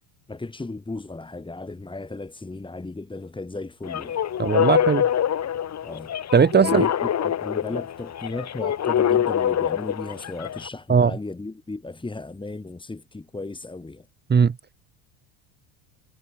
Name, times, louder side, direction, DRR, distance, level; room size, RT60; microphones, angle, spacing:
voice 1, 0.3-4.2 5.8-6.1 6.6-14.1, left 2 dB, 10° left, 7.7 m, -35 dB
sound 1, 3.8-10.7, left 9 dB, 35° left, 4.3 m, -25 dB
voice 2, 4.4-5.0 6.3-6.9 10.9-11.1 14.3-14.5, right 6 dB, 20° right, 2.5 m, -18 dB
cardioid pair, 130°, 47 cm